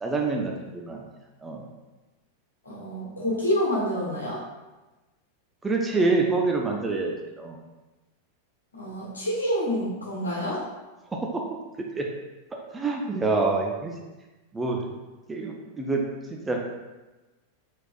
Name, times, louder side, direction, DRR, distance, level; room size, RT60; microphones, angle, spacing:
voice 1, 0.0-1.0 1.4-1.6 5.6-7.6 11.1-11.4 11.9-12.1 12.7-13.9 14.5-14.8 15.3-16.0 16.5-16.6, right 3 dB, 15° right, 0 dB, 0.5 m, -26 dB
voice 2, 2.6-4.4 8.7-10.6, equal, 75° left, -5 dB, 1.5 m, -27 dB
4.5 x 4.1 x 2.4 m, 1.1 s
figure-of-eight pair, 90°, 0 cm